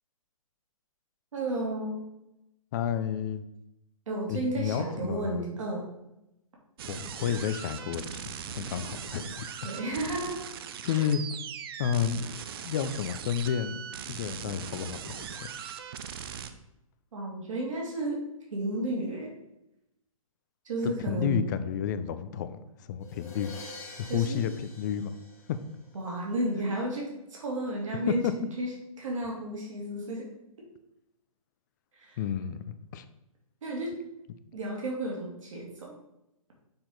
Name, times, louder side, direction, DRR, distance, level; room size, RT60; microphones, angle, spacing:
voice 1, 1.3-2.0 4.1-5.9 9.6-10.4 10.8-11.0 17.1-18.2 18.5-19.3 20.6-21.4 24.1-24.4 25.9-28.2 28.6-28.7 29.0-30.3 32.0-32.2 33.6-34.0 34.5-35.9, right 1 dB, 60° right, -2 dB, 2.2 m, -32 dB
voice 2, 2.7-3.4 4.3-5.6 6.9-8.2 8.5-9.5 10.8-11.4 11.8-12.2 12.6-13.8 14.1-15.3 20.8-23.6 24.0-24.5 24.8-25.1 25.5-25.6 28.2-28.3 32.2-33.0, left 8 dB, 30° left, 12 dB, 0.4 m, -31 dB
sound 1, 6.8-16.5, right 7 dB, 40° right, 0.5 m, -40 dB
sound 2, 23.0-26.0, left 3 dB, 15° left, 1.4 m, -46 dB
6.8 x 4.3 x 3.9 m, 0.88 s
figure-of-eight pair, 135°, 18 cm